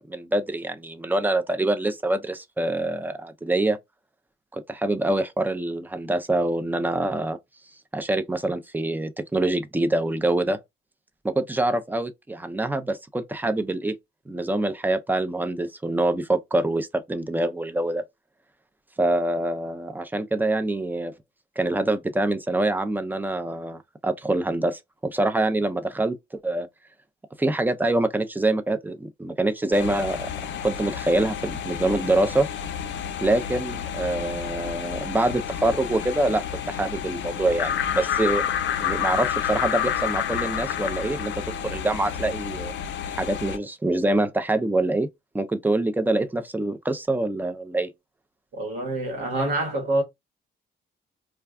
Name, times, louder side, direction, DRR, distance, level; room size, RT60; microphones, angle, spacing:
voice 1, 0.1-3.8 4.5-7.4 7.9-10.6 11.2-13.9 14.3-18.0 19.0-21.1 21.6-26.1 26.4-26.7 27.4-30.3 30.6-32.5 33.2-38.4 38.8-42.7 43.2-45.1 45.3-47.9, right 2 dB, 10° right, 0.5 m, -25 dB
sound 1, 29.7-43.6, left 9 dB, 70° left, 0.5 m, -30 dB
voice 2, 48.5-50.0, right 2 dB, 85° right, 1.2 m, -26 dB
2.3 x 2.3 x 3.5 m
cardioid pair, 90°, 20 cm